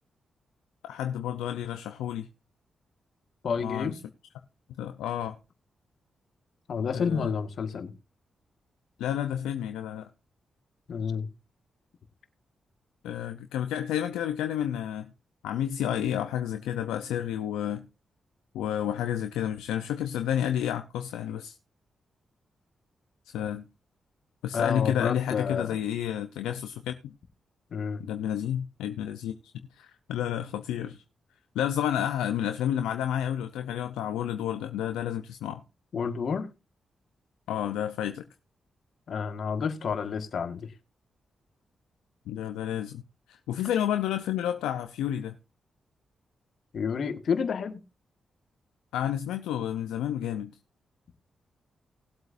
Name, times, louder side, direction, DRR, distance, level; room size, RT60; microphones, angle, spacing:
voice 1, 0.9-2.3 3.6-4.0 4.8-5.4 6.9-7.3 9.0-10.1 13.0-15.1 15.4-17.8 18.5-21.6 23.3-23.6 24.4-27.1 28.0-29.3 29.7-31.0 31.5-35.6 37.5-38.2 42.3-43.0 43.3-45.3 48.9-50.5, left 10 dB, 85° left, 0.7 m, -30 dB
voice 2, 3.4-4.0 6.7-7.9 10.9-11.3 24.5-25.8 27.7-28.0 35.9-36.5 39.1-40.7 46.7-47.8, left 6 dB, 65° left, 1.6 m, -30 dB
19.5 x 7.9 x 2.6 m
supercardioid pair, 40°, 0 cm